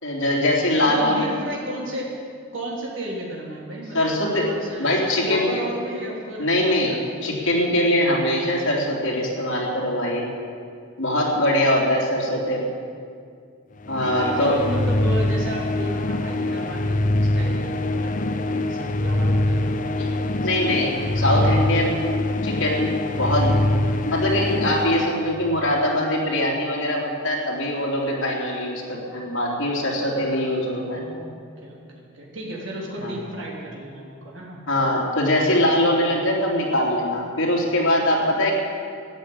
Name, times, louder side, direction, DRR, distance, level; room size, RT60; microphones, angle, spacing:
voice 1, 0.0-1.3 3.9-4.4 4.8-5.6 6.4-10.3 11.0-12.6 13.9-14.6 20.0-20.1 20.4-22.0 22.4-23.6 24.0-31.0 33.0-33.2 34.7-38.5, left 1 dB, 60° left, -3 dB, 3.4 m, -22 dB
voice 2, 0.7-2.1 2.5-7.0 11.3-12.7 14.0-20.5 31.0-34.6, right 1 dB, 65° right, -3 dB, 3.4 m, -34 dB
sound 1, 13.8-25.7, left 1 dB, 40° left, 0.6 m, -24 dB
13.5 x 10.0 x 8.8 m, 2.2 s
head